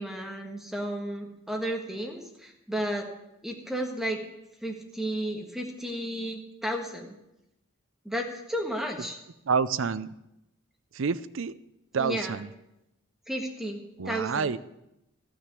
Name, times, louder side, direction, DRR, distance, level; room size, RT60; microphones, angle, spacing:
voice 1, 0.0-3.1 3.4-4.2 4.6-7.1 8.0-9.2 12.0-12.4 13.3-14.6, right 1 dB, ahead, 2 dB, 1.5 m, -33 dB
voice 2, 9.5-10.1 10.9-11.6 11.9-12.5 14.0-14.6, right 5 dB, 60° right, 16 dB, 0.5 m, -28 dB
13.5 x 6.2 x 9.7 m, 0.89 s
head